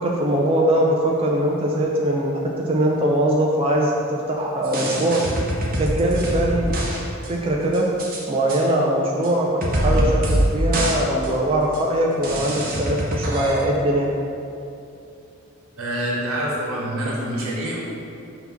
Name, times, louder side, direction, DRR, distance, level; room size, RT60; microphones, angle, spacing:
voice 1, 0.0-5.2 5.8-6.7 7.3-7.9 8.3-14.1, right 1 dB, 25° right, -2 dB, 0.4 m, -21 dB
sound 1, 4.6-7.0 7.2-7.3 7.7-8.2 8.5-8.6 9.2-9.3 9.6-10.5 10.7-11.0 11.2-11.3 11.7-11.8 12.2-13.7, right 1 dB, 45° right, 0.9 m, -24 dB
voice 2, 15.8-17.8, right 1 dB, 80° right, -4 dB, 1.3 m, -26 dB
5.9 x 2.9 x 5.6 m, 2.6 s
head